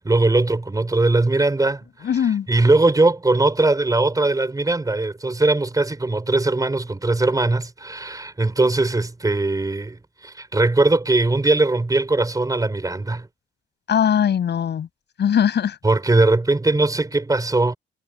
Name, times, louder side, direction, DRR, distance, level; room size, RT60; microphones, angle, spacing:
voice 1, 0.0-1.8 2.5-10.0 10.2-13.3 15.8-17.8, right 2 dB, 20° right, 4.6 m, -20 dB
voice 2, 2.0-2.5 13.9-14.9 15.2-15.8, left 8 dB, 60° left, 6.2 m, -20 dB
cardioid pair, 90°, 20 cm